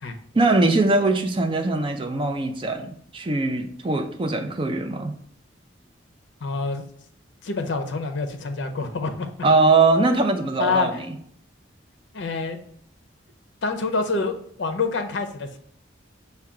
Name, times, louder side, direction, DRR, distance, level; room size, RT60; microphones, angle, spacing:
voice 1, 0.3-5.1 9.4-11.1, right 3 dB, 25° right, 0.4 m, -21 dB
voice 2, 6.4-6.8 7.4-9.3 10.6-10.9 12.1-12.6 13.6-15.6, left 3 dB, 70° left, 0.5 m, -26 dB
5.6 x 2.2 x 3.6 m
head